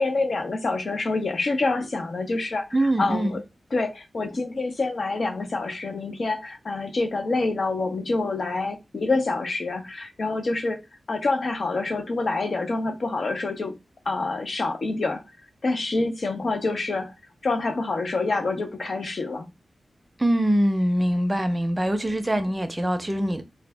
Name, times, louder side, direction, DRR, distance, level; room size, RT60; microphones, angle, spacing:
voice 1, 0.0-3.4 3.7-10.8 11.1-13.7 14.1-15.2 15.6-17.1 17.4-19.5 22.3-22.4, left 3 dB, 60° left, 0.8 m, -27 dB
voice 2, 2.7-3.4 20.2-23.4, right 1 dB, 15° right, 0.6 m, -23 dB
3.9 x 2.3 x 3.4 m
wide cardioid pair, 100°, 0 cm